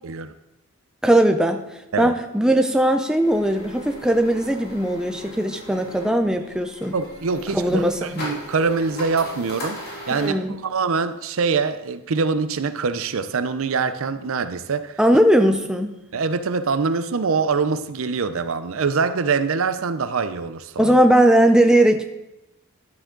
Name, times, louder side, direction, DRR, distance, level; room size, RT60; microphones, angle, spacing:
voice 1, 0.0-0.3 1.9-2.1 6.9-15.0 16.1-21.0, right 5 dB, 65° right, 11 dB, 0.5 m, -24 dB
voice 2, 1.0-1.6 2.0-6.9 7.5-8.2 10.1-10.5 15.0-15.9 20.8-22.0, right 1 dB, 5° right, 5 dB, 0.4 m, -18 dB
sound 1, 3.2-10.3, left 1 dB, 45° left, 2.9 m, -38 dB
11.5 x 7.1 x 3.8 m, 0.96 s
head